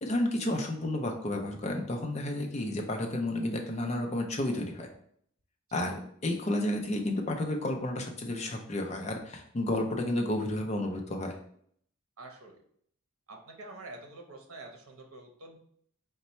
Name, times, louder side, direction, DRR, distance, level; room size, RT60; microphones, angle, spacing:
voice 1, 0.0-4.9 5.7-5.9 6.2-11.4, left 1 dB, 30° left, 3 dB, 0.5 m, -31 dB
voice 2, 12.2-12.6 13.3-15.6, right 2 dB, 70° right, 3 dB, 0.8 m, -47 dB
4.0 x 2.2 x 4.2 m, 0.65 s
head